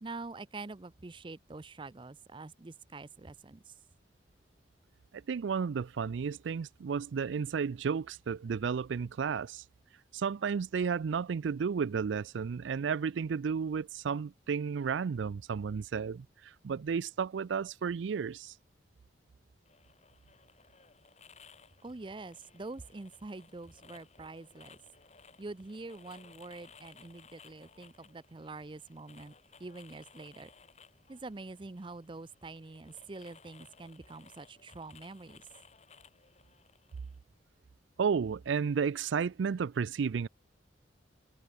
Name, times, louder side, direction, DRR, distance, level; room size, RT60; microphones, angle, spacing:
voice 1, 0.0-3.7 21.8-24.8 25.4-29.3 29.6-30.5 31.1-35.4, right 3 dB, 25° right, 0.5 m, -45 dB
voice 2, 5.1-9.6 10.1-18.5 38.0-40.3, right 6 dB, 85° right, 0.4 m, -32 dB
sound 1, 19.6-37.2, left 5 dB, 35° left, 2.3 m, -59 dB
head